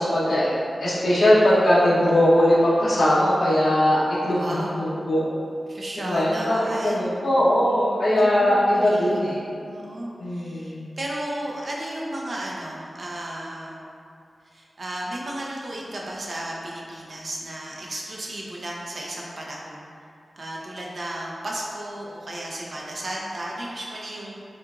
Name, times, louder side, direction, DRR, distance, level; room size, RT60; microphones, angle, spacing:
voice 1, 0.0-5.2 6.0-9.4 10.2-10.8, left 1 dB, 75° left, -11 dB, 1.0 m, -20 dB
voice 2, 4.3-4.8 5.7-7.2 7.6-7.7 8.1-9.4 9.6-13.8 14.5-20.0 20.4-24.4, right 1 dB, 50° right, -3 dB, 0.7 m, -34 dB
7.5 x 2.6 x 2.4 m, 2.6 s
wide cardioid pair, 100°, 0 cm